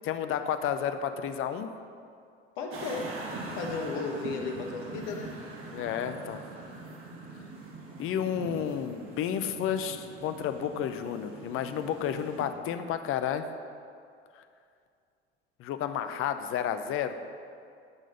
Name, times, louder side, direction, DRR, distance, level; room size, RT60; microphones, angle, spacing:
voice 1, 0.0-1.7 5.7-6.4 8.0-13.4 14.4-14.5 15.6-17.1, left 9 dB, 40° left, 9 dB, 0.7 m, -31 dB
voice 2, 2.6-3.2 3.6-5.3, left 4 dB, 60° left, 3 dB, 1.3 m, -34 dB
sound 1, 2.7-12.5, right 3 dB, 45° right, 1.8 m, -42 dB
11.0 x 6.2 x 5.4 m, 2.4 s
figure-of-eight pair, 65°, 32 cm